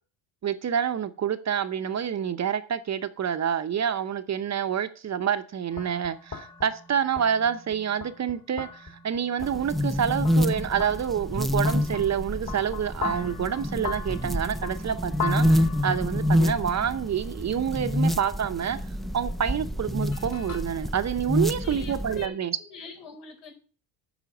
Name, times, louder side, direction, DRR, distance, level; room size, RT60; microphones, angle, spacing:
voice 1, 0.4-18.8 19.1-22.6, right 8 dB, 35° right, 0.7 m, -28 dB
sound 1, 5.7-20.6, left 6 dB, 35° left, 2.6 m, -40 dB
sound 2, 9.4-22.3, equal, ahead, 0.3 m, -27 dB
voice 2, 21.4-22.3 22.6-23.5, left 4 dB, 75° left, 4.5 m, -43 dB
9.2 x 5.6 x 7.1 m
cardioid pair, 110°, 49 cm